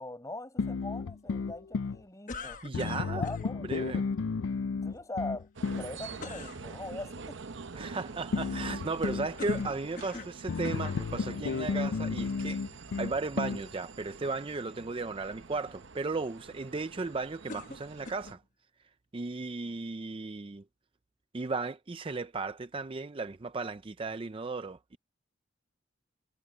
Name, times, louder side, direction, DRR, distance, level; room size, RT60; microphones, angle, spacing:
voice 1, 0.0-2.6 3.1-3.7 4.8-7.4 7.7-7.9 9.0-9.3, left 2 dB, 15° left, 5.6 m, -41 dB
sound 1, 0.6-2.0 2.7-5.9 8.3-9.7 10.5-13.7, left 4 dB, 80° left, 0.4 m, -33 dB
sound 2, 2.3-3.5 6.2-6.6 9.4-10.4 10.6-11.0 11.8-11.9 17.5-18.4, left 3 dB, 45° left, 1.2 m, -43 dB
voice 2, 2.6-3.2 3.7-4.0 7.8-12.7 13.0-18.4 19.1-20.6 21.3-25.0, right 3 dB, 25° right, 0.5 m, -35 dB
sound 3, 5.5-18.3, right 4 dB, 70° right, 0.9 m, -46 dB
head